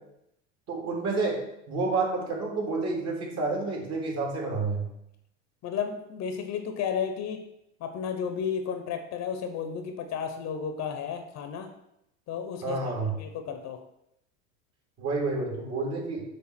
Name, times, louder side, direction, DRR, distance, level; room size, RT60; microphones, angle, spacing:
voice 1, 0.7-1.4 1.7-4.9 12.6-13.2 15.0-16.2, right 3 dB, 40° right, -1 dB, 2.7 m, -29 dB
voice 2, 5.6-7.4 7.8-11.7 12.3-12.8 13.2-13.8, left 7 dB, 45° left, 7 dB, 1.0 m, -33 dB
6.7 x 3.3 x 6.1 m, 0.80 s
hypercardioid pair, 100°, 39 cm